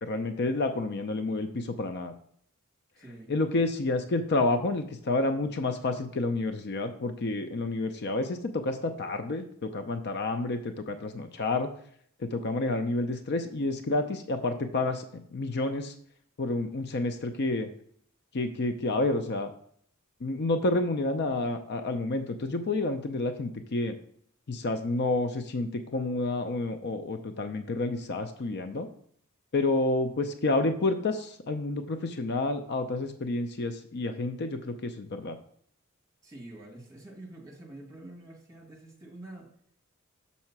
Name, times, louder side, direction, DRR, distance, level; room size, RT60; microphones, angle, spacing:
voice 1, 0.0-2.1 3.3-11.7 12.2-15.9 16.4-17.7 18.3-19.5 20.2-24.0 24.5-28.9 29.5-35.4, left 2 dB, 50° left, 8 dB, 0.5 m, -29 dB
voice 2, 3.0-3.3 36.2-39.5, right 1 dB, 15° right, 0 dB, 2.0 m, -46 dB
6.5 x 4.2 x 5.9 m, 0.63 s
head